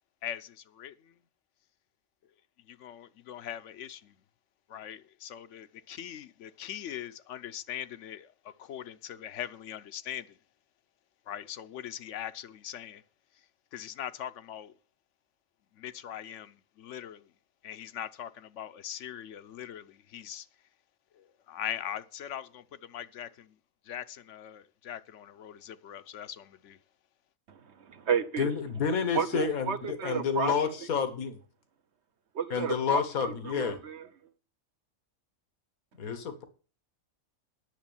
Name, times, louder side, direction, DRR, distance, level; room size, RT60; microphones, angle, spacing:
voice 1, 0.2-1.2 2.6-4.2 4.7-10.4 11.3-13.0 13.3-13.5 13.7-14.7 15.7-17.3 17.6-20.5 21.1-23.6 23.8-26.8, left 10 dB, 65° left, 0.9 m, -41 dB
voice 2, 27.5-28.5 29.1-30.5 32.3-34.0, right 7 dB, 55° right, 1.2 m, -32 dB
voice 3, 28.4-31.4 32.5-33.8 36.0-36.4, left 6 dB, 90° left, 1.7 m, -29 dB
10.5 x 6.6 x 7.0 m
omnidirectional pair, 1.4 m